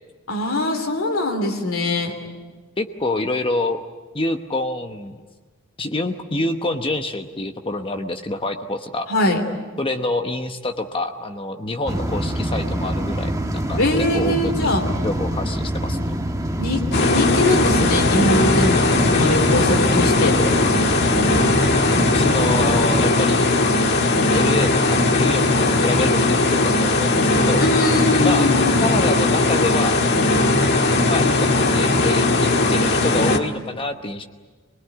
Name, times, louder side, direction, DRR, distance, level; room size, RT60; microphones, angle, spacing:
voice 1, 0.3-2.1 9.1-9.4 13.8-14.8 16.6-20.4 27.6-28.9, left 1 dB, 75° left, 3 dB, 3.1 m, -22 dB
voice 2, 2.8-3.8 4.1-5.2 5.8-9.1 9.8-14.7 15.0-16.2 22.1-23.5 24.3-27.6 28.2-28.5 28.8-30.0 31.1-34.2, left 2 dB, 25° left, 6 dB, 1.0 m, -27 dB
sound 1, 11.9-23.1, equal, 15° right, 1.3 m, -26 dB
sound 2, 16.9-33.4, left 2 dB, 50° left, 1.7 m, -18 dB
25.0 x 20.5 x 9.4 m, 1.3 s
head